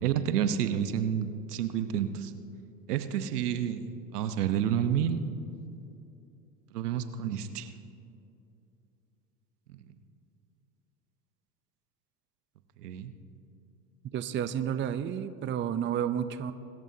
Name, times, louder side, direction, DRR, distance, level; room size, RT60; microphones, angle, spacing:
voice 1, 0.0-2.3 2.9-3.9 4.1-5.2 6.7-7.7 12.8-13.1, right 9 dB, 80° right, 10 dB, 1.0 m, -29 dB
voice 2, 14.1-16.5, right 9 dB, 25° right, 12 dB, 0.6 m, -31 dB
25.0 x 13.5 x 2.8 m, 2.8 s
hypercardioid pair, 90°, 46 cm